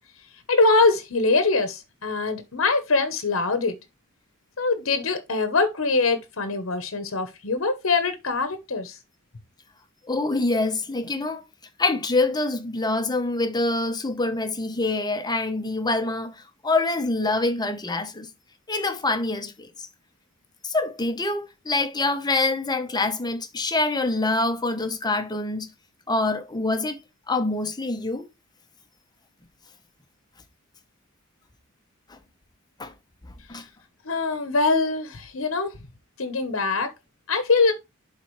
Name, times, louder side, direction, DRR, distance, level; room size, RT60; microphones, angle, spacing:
voice 1, 0.5-3.7 4.6-9.0 34.0-35.7 36.2-36.9 37.3-37.7, left 3 dB, 75° left, 1.0 m, -23 dB
voice 2, 10.1-11.4 11.8-18.3 18.7-19.7 20.6-25.7 26.1-27.0 27.3-28.3 32.1-32.2 32.8-32.9 33.5-33.6, left 2 dB, 20° left, 1.0 m, -25 dB
11.0 x 4.1 x 3.1 m
head